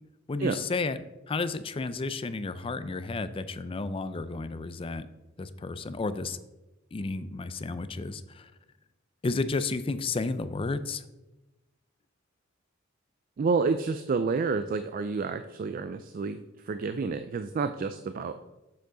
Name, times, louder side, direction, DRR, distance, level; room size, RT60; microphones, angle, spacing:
voice 1, 0.3-1.0 1.3-5.1 5.4-6.4 6.9-8.4 9.2-11.0, left 3 dB, 25° left, 12 dB, 0.4 m, -32 dB
voice 2, 13.4-16.4 16.7-18.3, right 4 dB, 45° right, 10 dB, 0.3 m, -29 dB
7.5 x 6.9 x 3.9 m, 1.0 s
head